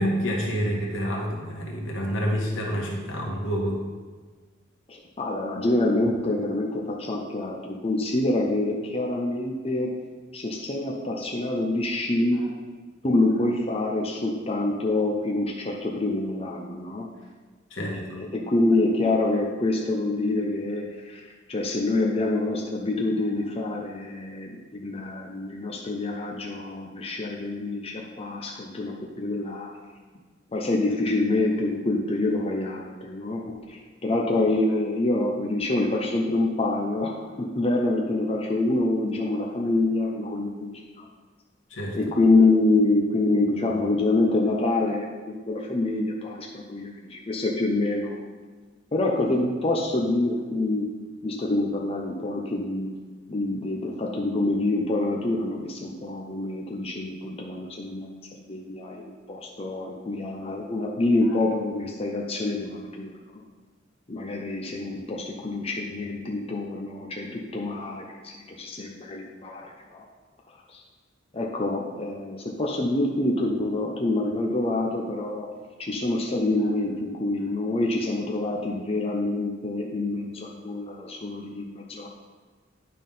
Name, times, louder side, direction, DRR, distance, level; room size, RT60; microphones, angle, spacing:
voice 1, 0.0-3.8 12.3-12.5 17.7-18.2 41.7-42.0 61.3-61.4 77.5-77.6, equal, 80° left, -1 dB, 1.6 m, -28 dB
voice 2, 4.9-9.9 10.3-12.4 13.0-17.1 17.8-21.2 21.5-29.7 30.5-41.1 41.9-48.2 48.9-50.9 51.2-52.9 53.3-63.4 64.1-70.1 70.7-70.8 71.3-75.5 75.8-82.1, left 2 dB, 30° left, -1 dB, 0.7 m, -26 dB
9.5 x 3.6 x 5.5 m, 1.4 s
head